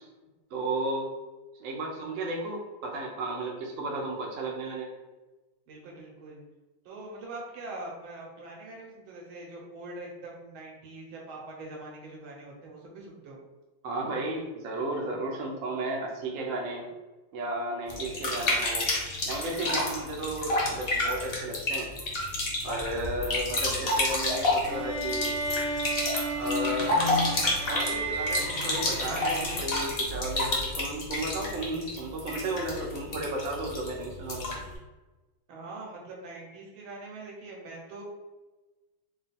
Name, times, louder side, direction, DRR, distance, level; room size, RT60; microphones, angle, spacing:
voice 1, 0.5-1.1 1.6-4.9 13.8-16.8 17.3-18.9 19.3-21.9 22.6-25.4 26.3-27.0 27.7-34.6, right 2 dB, 90° right, 0 dB, 0.7 m, -33 dB
voice 2, 5.7-6.4 6.8-13.4 35.5-38.0, right 2 dB, 70° right, -2 dB, 1.7 m, -43 dB
sound 1, 17.9-34.7, left 2 dB, 60° left, 0.5 m, -30 dB
sound 2, 24.6-29.9, equal, 30° right, 1.2 m, -32 dB
3.7 x 2.4 x 4.1 m, 1.2 s
omnidirectional pair, 2.4 m